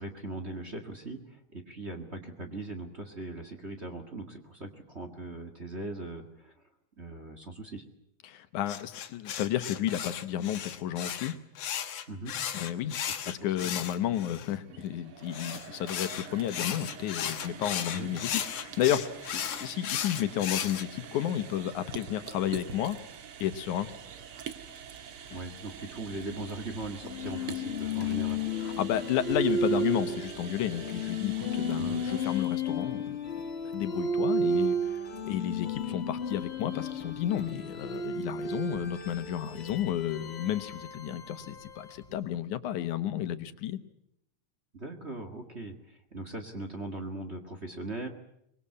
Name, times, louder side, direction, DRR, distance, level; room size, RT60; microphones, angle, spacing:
voice 1, 0.0-6.5 7.0-7.8 12.1-12.4 13.0-13.1 13.4-13.7 17.9-18.1 25.3-28.4 31.8-32.0 35.6-35.7 44.7-48.1, right 2 dB, 25° right, 5 dB, 1.6 m, -40 dB
voice 2, 8.2-11.3 12.5-13.0 13.2-23.0 23.4-23.9 25.3-25.4 28.8-33.2 33.6-43.8, left 11 dB, 90° left, 10 dB, 2.6 m, -32 dB
sound 1, 8.7-14.5 15.3-20.8, left 9 dB, 60° left, 2.2 m, -35 dB
sound 2, 14.5-32.8, right 8 dB, 55° right, 2.0 m, -46 dB
sound 3, 27.0-42.1, left 1 dB, 30° left, 1.1 m, -33 dB
24.0 x 21.5 x 8.5 m, 0.76 s
omnidirectional pair, 3.4 m